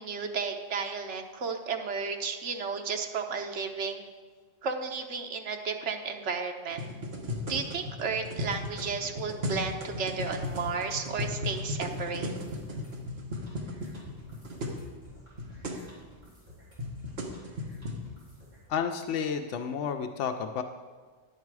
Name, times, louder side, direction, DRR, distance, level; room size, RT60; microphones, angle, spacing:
voice 1, 0.0-4.0 4.6-6.8 7.5-12.3, right 5 dB, 85° right, 4 dB, 1.2 m, -33 dB
sound 1, 6.7-14.8 15.1-15.2 15.4-15.8 16.5-18.0, left 1 dB, 60° right, 1.4 m, -36 dB
sound 2, 10.0-18.7, equal, 40° right, 3.3 m, -55 dB
voice 2, 18.7-20.6, left 7 dB, 85° left, 6 dB, 0.9 m, -31 dB
10.5 x 8.1 x 4.7 m, 1.5 s
omnidirectional pair, 1.2 m